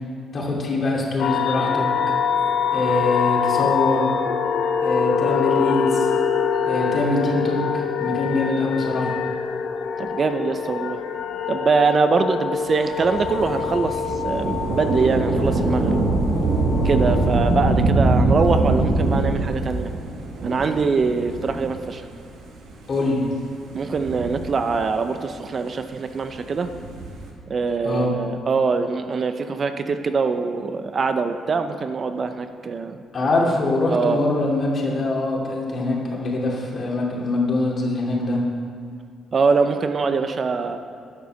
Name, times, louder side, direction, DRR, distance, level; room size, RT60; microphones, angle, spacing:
voice 1, 0.3-2.1 2.7-4.1 4.8-6.1 6.6-9.1 22.9-23.2 27.8-28.2 33.1-38.4, left 2 dB, 45° left, -3 dB, 2.8 m, -23 dB
sound 1, 1.2-17.7, left 6 dB, 75° left, 0.8 m, -25 dB
voice 2, 10.0-11.0 11.5-16.0 16.8-19.9 20.4-22.0 23.7-26.7 27.5-33.0 33.9-34.2 39.3-40.8, right 4 dB, 45° right, 8 dB, 0.7 m, -23 dB
Thunder / Rain, 13.0-22.0 22.7-22.8 23.7-25.0 26.5-27.3, right 2 dB, 85° right, 1.8 m, -23 dB
11.0 x 6.9 x 6.3 m, 2.4 s
cardioid pair, 90°, 0 cm